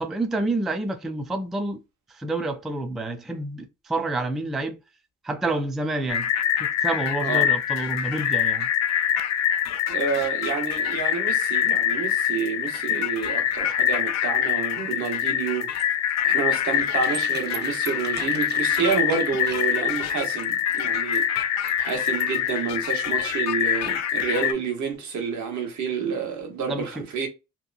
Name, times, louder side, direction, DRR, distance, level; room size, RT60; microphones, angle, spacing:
voice 1, 0.0-1.8 2.1-4.8 5.2-6.3 6.6-8.7 26.7-27.0, right 2 dB, ahead, 0.3 m, -28 dB
sound 1, 6.1-24.5, left 10 dB, 60° left, 0.4 m, -25 dB
voice 2, 9.9-15.7 16.2-21.3 21.8-27.3, right 6 dB, 70° right, 1.1 m, -29 dB
sound 2, 15.7-22.5, right 5 dB, 35° right, 0.8 m, -39 dB
2.8 x 2.2 x 2.4 m
cardioid pair, 90°, 30 cm